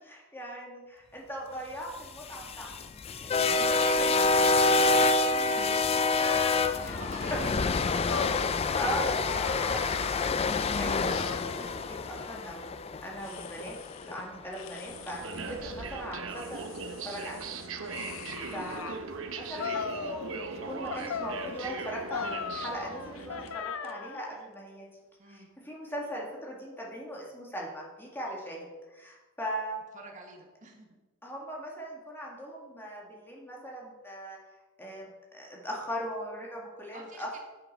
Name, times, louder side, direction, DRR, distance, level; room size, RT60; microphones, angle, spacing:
voice 1, 0.3-2.7 3.1-3.7 4.0-4.4 5.6-5.7 6.8-7.0 7.3-7.4 8.8-12.8 13.0-13.8 14.0-17.4 18.0-19.0 19.3-24.9 25.3-29.8 31.2-34.4 34.8-37.4, equal, 10° left, -2 dB, 1.7 m, -39 dB
sound 1, 2.0-14.2, left 3 dB, 30° left, 0.4 m, -27 dB
voice 2, 3.5-7.6 15.5-15.8 16.7-17.0 25.2-25.5 29.9-30.9 36.9-37.4, right 2 dB, 40° right, 2 dB, 1.7 m, -46 dB
sound 2, 6.2-10.6 11.1-12.6 13.2-14.1 14.5-15.5 16.1-19.0 19.6-20.6 20.9-24.3, left 6 dB, 85° left, 0.6 m, -40 dB
sound 3, 14.9-23.6, right 4 dB, 75° right, 1.0 m, -39 dB
9.1 x 7.3 x 5.3 m, 1.2 s
head